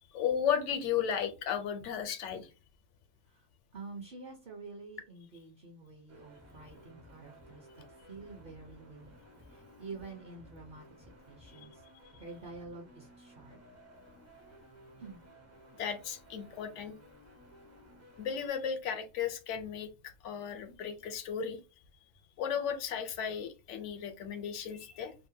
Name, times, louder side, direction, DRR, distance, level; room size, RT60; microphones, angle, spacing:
voice 1, 0.1-2.5 11.6-11.7 15.8-16.9 18.2-21.6 22.4-25.1, left 8 dB, 80° left, 8 dB, 0.9 m, -35 dB
voice 2, 3.7-7.7 8.0-9.2 9.5-13.6 15.0-15.2, right 3 dB, 55° right, 1 dB, 0.7 m, -48 dB
sound 1, 6.1-18.5, equal, 25° right, 0.4 m, -57 dB
2.7 x 2.1 x 2.6 m, 0.30 s
omnidirectional pair, 1.3 m